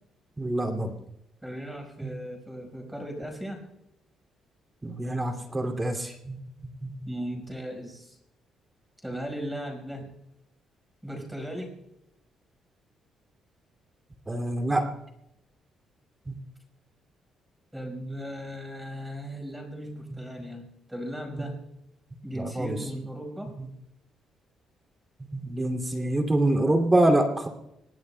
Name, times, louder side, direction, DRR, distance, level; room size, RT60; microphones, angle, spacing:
voice 1, 0.4-0.9 2.0-2.1 4.8-6.4 6.8-6.9 14.3-14.9 16.3-16.4 22.3-22.7 25.3-27.5, right 1 dB, 20° right, 2 dB, 2.6 m, -25 dB
voice 2, 1.4-3.6 7.1-8.2 9.0-10.1 11.0-11.7 17.7-21.6 22.2-23.5, equal, 5° right, 3 dB, 5.1 m, -37 dB
25.0 x 21.5 x 2.3 m, 0.84 s
cardioid pair, 90°, 0 cm